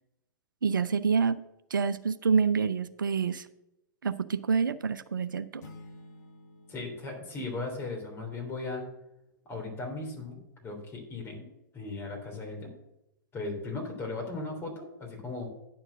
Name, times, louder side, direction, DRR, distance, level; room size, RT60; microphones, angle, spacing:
voice 1, 0.6-1.4 1.7-3.5 4.0-5.7, right 5 dB, 80° right, 17 dB, 0.4 m, -27 dB
sound 1, 5.6-8.4, left 2 dB, 60° left, 1.4 m, -52 dB
voice 2, 6.7-8.8 9.5-11.5 11.7-12.7 13.3-15.5, left 3 dB, 20° left, 0 dB, 3.4 m, -37 dB
9.9 x 4.5 x 7.6 m, 0.87 s
figure-of-eight pair, 100°, 11 cm